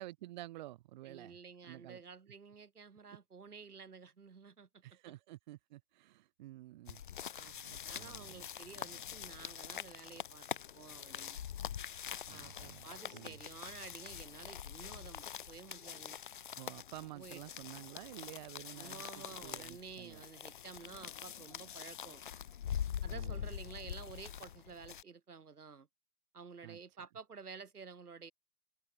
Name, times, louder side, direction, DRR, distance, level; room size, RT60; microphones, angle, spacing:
voice 1, 0.0-1.4 1.7-2.0 3.1-3.2 4.8-7.0 7.4-8.4 12.3-13.4 16.6-20.2 23.1-23.5 26.6-26.8, right 16 dB, 30° right, 2.8 m, -51 dB
voice 2, 1.0-4.8 7.3-11.4 12.3-16.2 17.1-17.4 18.8-22.2 23.0-25.9 26.3-28.3, right 5 dB, 80° right, 4.5 m, -52 dB
sound 1, 6.9-25.0, left 9 dB, 35° left, 0.7 m, -44 dB
hypercardioid pair, 150°, 45 cm